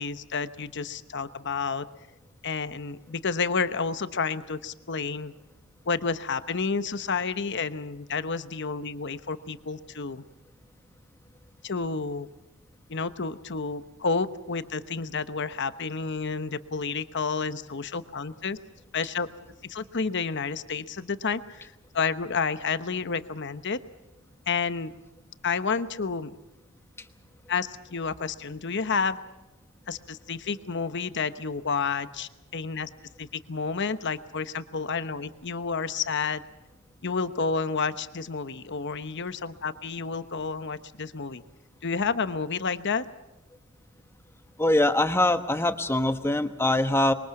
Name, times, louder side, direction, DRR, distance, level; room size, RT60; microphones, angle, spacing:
voice 1, 0.0-1.9 2.4-5.3 5.9-10.2 11.6-12.3 12.9-18.6 18.9-19.3 19.6-23.8 24.5-24.9 25.4-26.4 27.5-29.2 29.9-32.9 33.2-36.4 37.0-41.4 41.8-43.0, left 5 dB, 55° left, 12 dB, 1.0 m, -30 dB
voice 2, 44.6-47.1, left 1 dB, 10° left, 9 dB, 1.1 m, -23 dB
25.5 x 23.0 x 6.0 m, 0.98 s
head